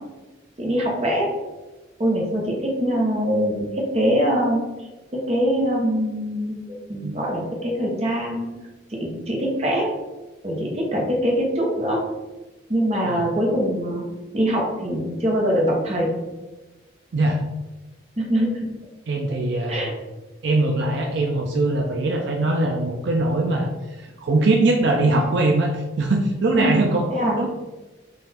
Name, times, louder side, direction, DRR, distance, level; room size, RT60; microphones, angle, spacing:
voice 1, 0.6-1.3 2.0-4.6 5.1-8.5 8.9-9.9 10.4-12.0 12.7-14.1 14.3-16.2 18.2-18.7 19.7-19.9 26.5-26.8 27.1-27.4, equal, 35° right, -2 dB, 0.9 m, -23 dB
voice 2, 19.1-19.9 20.4-27.1 27.4-27.5, right 2 dB, 65° right, 1 dB, 0.4 m, -21 dB
4.0 x 2.5 x 4.1 m, 1.1 s
head